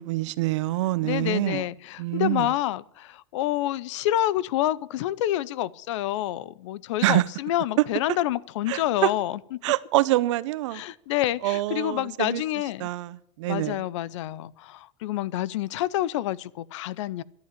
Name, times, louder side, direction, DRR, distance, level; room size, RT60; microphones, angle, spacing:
voice 1, 0.0-1.6 2.0-2.5 7.0-7.2 8.7-9.1 9.6-10.8 11.4-12.4 12.8-13.8, right 17 dB, 85° right, 0.8 m, -25 dB
voice 2, 1.0-9.6 10.7-12.9 13.5-17.2, left 13 dB, 85° left, 0.7 m, -28 dB
11.5 x 10.5 x 8.7 m
supercardioid pair, 155°, 15 cm